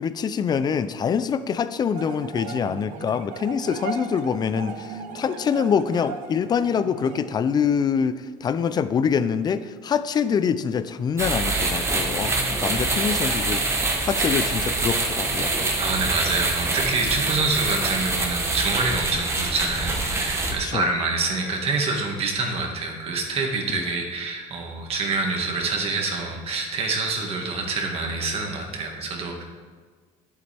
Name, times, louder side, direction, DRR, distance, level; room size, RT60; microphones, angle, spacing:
voice 1, 0.0-15.5 20.6-20.9 23.7-23.8, left 7 dB, 30° left, 14 dB, 0.4 m, -25 dB
sound 1, 1.9-7.2, right 6 dB, 75° right, 0.8 m, -37 dB
sound 2, 11.2-20.5, right 2 dB, 20° right, 1.1 m, -25 dB
voice 2, 15.8-29.4, right 3 dB, 50° right, 1 dB, 1.8 m, -26 dB
10.5 x 8.1 x 3.5 m, 1.5 s
cardioid pair, 125°, 13 cm